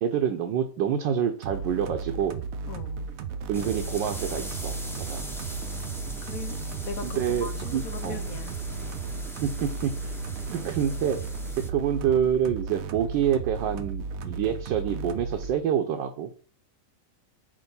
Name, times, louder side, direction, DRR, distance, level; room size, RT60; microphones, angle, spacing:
voice 1, 0.0-2.4 3.5-4.7 5.0-5.2 7.0-8.2 9.4-10.1 10.5-11.2 11.5-16.3, right 8 dB, 80° right, 1.5 m, -27 dB
sound 1, 1.4-15.5, right 5 dB, 60° right, 0.9 m, -35 dB
voice 2, 2.7-3.1 6.2-8.5, left 7 dB, 65° left, 0.9 m, -40 dB
sound 2, 3.5-11.7, equal, ahead, 0.5 m, -41 dB
8.8 x 3.1 x 5.4 m
omnidirectional pair, 2.0 m